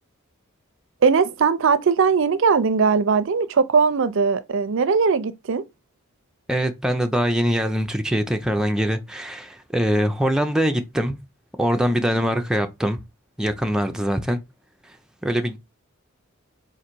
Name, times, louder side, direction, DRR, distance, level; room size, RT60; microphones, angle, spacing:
voice 1, 1.0-5.6, right 5 dB, 60° right, 0.5 m, -19 dB
voice 2, 6.5-11.2 11.6-13.0 13.4-14.4 15.2-15.6, equal, 5° right, 0.4 m, -23 dB
3.9 x 2.6 x 4.4 m
head